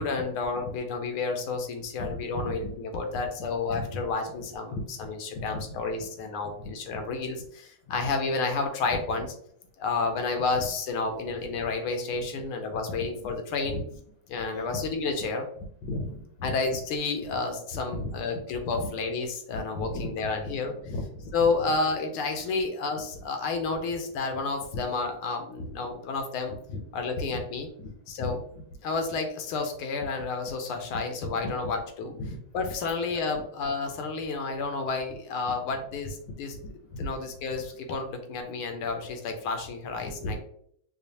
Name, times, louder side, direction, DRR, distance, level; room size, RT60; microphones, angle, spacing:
voice 1, 0.0-9.3 9.8-13.8 14.3-15.4 16.4-20.7 21.3-26.6 26.9-27.7 28.1-28.4 28.8-32.1 32.5-36.6 37.0-40.4, left 4 dB, 85° left, 5 dB, 1.6 m, -30 dB
voice 2, 2.0-2.7 3.7-4.0 4.7-6.1 6.6-6.7 7.9-8.0 9.2-9.3 11.2-11.3 13.0-13.3 13.7-13.8 14.4-14.9 15.8-16.5 17.9-18.1 18.7-18.9 19.5-20.1 20.4-21.5 24.7-24.8 25.6-25.8 26.5-26.8 27.2-27.4 27.8-27.9 28.2-28.6 31.4-31.5 32.2-32.4 36.5-36.7 37.0-37.1 40.0-40.4, left 1 dB, 70° left, 1 dB, 1.2 m, -36 dB
4.9 x 2.4 x 2.7 m, 0.67 s
omnidirectional pair, 2.3 m